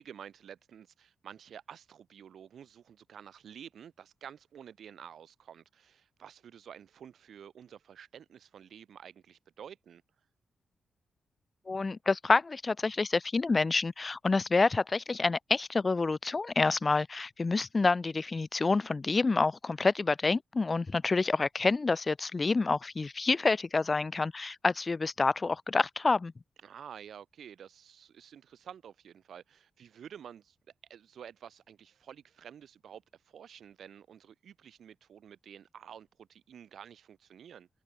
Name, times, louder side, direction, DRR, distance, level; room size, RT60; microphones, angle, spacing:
voice 1, 0.0-10.0 26.6-30.6 30.9-37.7, right 8 dB, 75° right, 1.1 m, -50 dB
voice 2, 11.7-26.3, left 3 dB, 40° left, 0.5 m, -28 dB
open air
cardioid pair, 55°, 0 cm